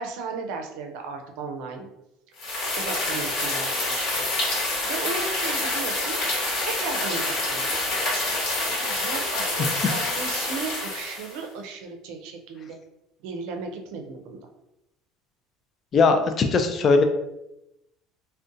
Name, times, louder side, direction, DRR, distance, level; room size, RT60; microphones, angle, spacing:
voice 1, 0.0-1.9 2.8-4.3 4.8-6.2 6.6-8.0 8.8-12.8 13.2-14.4, right 4 dB, 75° right, 4 dB, 0.5 m, -35 dB
sound 1, 2.4-11.4, left 2 dB, 55° left, 1.2 m, -27 dB
voice 2, 9.6-9.9 15.9-17.0, left 4 dB, 30° left, 6 dB, 0.3 m, -20 dB
2.5 x 2.2 x 3.7 m, 0.89 s
cardioid pair, 145°, 0 cm